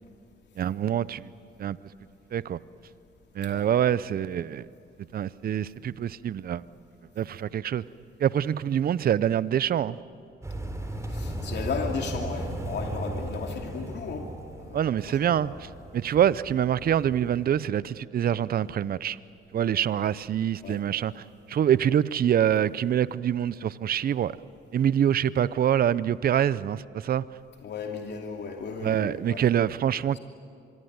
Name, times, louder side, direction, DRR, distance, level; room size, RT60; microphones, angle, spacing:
voice 1, 0.6-1.3 1.6-1.8 2.3-2.6 3.4-4.7 5.1-6.6 7.2-7.8 8.2-10.0 14.7-15.7 15.9-19.2 19.5-21.2 21.5-24.4 24.7-27.2 28.8-30.2, right 10 dB, 50° right, 0.6 m, -25 dB
sound 1, 10.4-17.4, right 1 dB, 15° right, 3.5 m, -36 dB
voice 2, 11.1-14.3 14.6-15.6 20.6-20.8 27.6-29.4 30.1-30.2, left 5 dB, 60° left, 2.7 m, -35 dB
25.5 x 23.0 x 9.5 m
cardioid pair, 90°, 20 cm